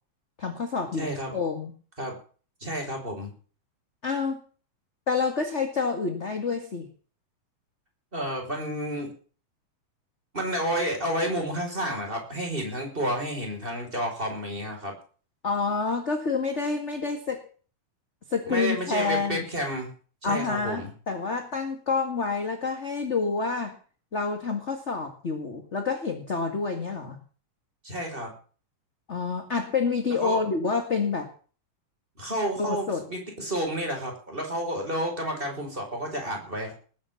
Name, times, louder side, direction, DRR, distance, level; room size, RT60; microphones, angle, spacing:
voice 1, 0.4-1.7 4.0-4.4 5.1-6.8 15.4-17.5 18.3-19.4 20.2-23.7 24.1-27.2 29.1-31.3 32.6-33.0, left 4 dB, 30° left, 5 dB, 1.5 m, -28 dB
voice 2, 0.9-1.4 2.0-2.2 2.6-3.3 8.1-9.1 10.3-14.9 18.5-19.9 20.2-20.9 27.8-28.3 30.2-30.4 32.2-36.7, right 1 dB, 15° right, 1 dB, 5.7 m, -30 dB
20.0 x 8.8 x 7.0 m, 0.41 s
omnidirectional pair, 3.8 m